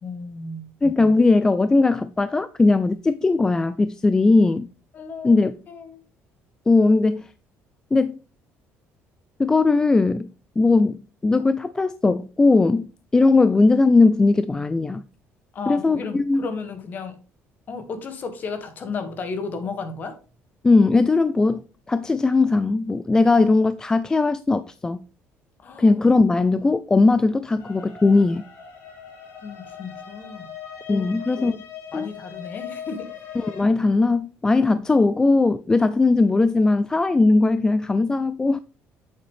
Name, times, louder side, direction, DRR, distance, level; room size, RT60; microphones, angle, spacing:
voice 1, 0.0-0.7 4.9-5.3 5.7-6.0 15.5-17.2 17.7-20.2 25.6-25.9 29.4-30.5 31.0-31.1 31.4-31.5 31.9-33.1, left 4 dB, 40° left, 1.7 m, -33 dB
voice 2, 0.8-4.7 5.2-5.5 6.7-7.3 7.9-8.2 9.4-10.3 10.6-15.0 15.7-16.5 20.6-21.6 21.9-25.0 25.8-28.4 30.9-31.6 31.9-32.1 33.4-38.6, left 3 dB, 15° left, 0.3 m, -19 dB
sound 1, 27.6-33.6, left 8 dB, 75° left, 3.1 m, -40 dB
8.7 x 7.0 x 3.2 m
cardioid pair, 155°, 5 cm